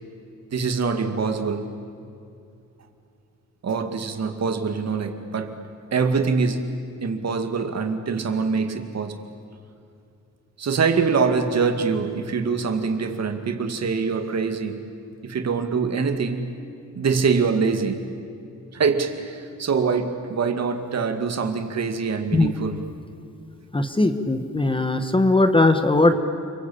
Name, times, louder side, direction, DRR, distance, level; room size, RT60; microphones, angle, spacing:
voice 1, 0.5-1.7 3.6-5.6 5.9-6.7 7.0-9.2 10.6-14.8 15.2-16.5 17.0-18.1 18.7-22.8, right 5 dB, 55° right, 7 dB, 2.3 m, -24 dB
voice 2, 23.7-26.1, left 2 dB, 15° left, 8 dB, 1.4 m, -19 dB
30.0 x 22.5 x 8.7 m, 2.6 s
wide cardioid pair, 125°, 32 cm